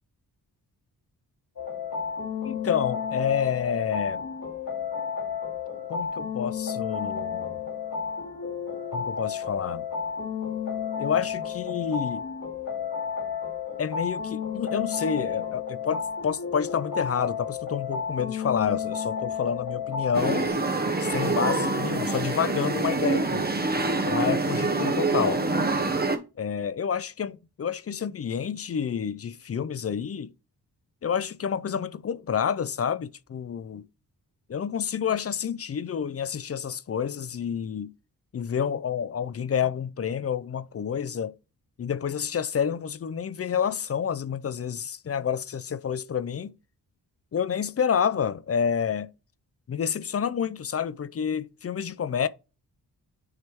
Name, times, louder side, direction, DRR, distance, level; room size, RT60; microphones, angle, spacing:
sound 1, 1.6-20.5, left 6 dB, 55° left, 2.6 m, -32 dB
voice 1, 2.4-4.3 5.9-7.6 8.9-9.9 11.0-12.2 13.8-20.5 21.0-23.5 24.0-25.4 26.4-30.3 31.0-33.8 34.5-37.9 38.3-41.3 41.8-46.5 47.3-49.1 49.7-52.3, left 7 dB, 40° left, 0.5 m, -29 dB
sound 2, 20.1-26.2, right 3 dB, 25° right, 1.1 m, -26 dB
9.6 x 3.5 x 3.0 m
cardioid pair, 65°, 39 cm